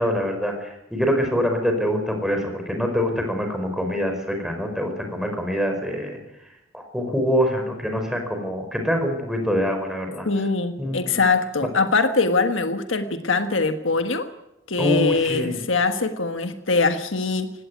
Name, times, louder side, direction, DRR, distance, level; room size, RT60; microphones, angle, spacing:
voice 1, 0.0-6.2 6.7-10.3 10.8-11.2 14.8-15.6, equal, 5° right, 4 dB, 4.9 m, -25 dB
voice 2, 10.2-14.3 14.7-17.5, left 3 dB, 75° left, 7 dB, 1.5 m, -22 dB
19.0 x 17.0 x 9.6 m, 0.89 s
head